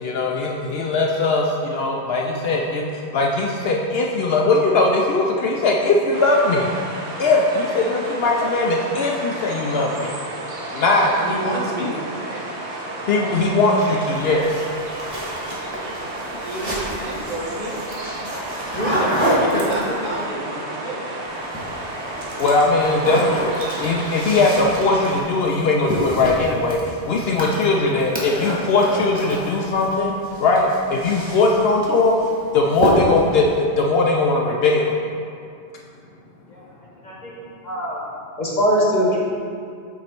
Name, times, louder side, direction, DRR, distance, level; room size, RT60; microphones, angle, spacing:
voice 1, 0.0-6.7 7.2-10.1 10.7-11.1 13.1-14.6 22.4-30.1 30.4-32.2 32.5-35.0, left 3 dB, 65° left, -1 dB, 0.7 m, -20 dB
sound 1, 6.1-25.2, right 2 dB, 70° right, 1.1 m, -32 dB
voice 2, 11.0-12.4 16.4-17.8 18.6-21.2, right 1 dB, 40° right, -6 dB, 1.1 m, -28 dB
sound 2, 14.1-20.2 21.3-21.8 22.1-30.0 30.2-31.7 32.1-32.4 32.7-33.3, equal, 25° right, 1.3 m, -28 dB
voice 3, 37.6-38.0 38.4-39.2, equal, 45° left, -4 dB, 1.1 m, -21 dB
8.2 x 3.1 x 4.3 m, 2.4 s
omnidirectional pair, 1.2 m